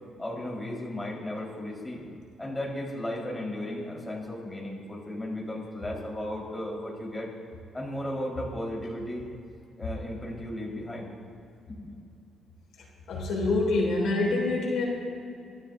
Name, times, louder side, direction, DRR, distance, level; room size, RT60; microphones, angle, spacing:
voice 1, 0.2-2.0 2.4-7.3 7.7-9.2 9.8-11.1 11.7-12.0, left 1 dB, 15° left, -3 dB, 4.1 m, -35 dB
voice 2, 13.1-14.9, left 2 dB, 75° left, -2 dB, 3.0 m, -26 dB
25.0 x 12.0 x 2.6 m, 2.5 s
cardioid pair, 90°, 0 cm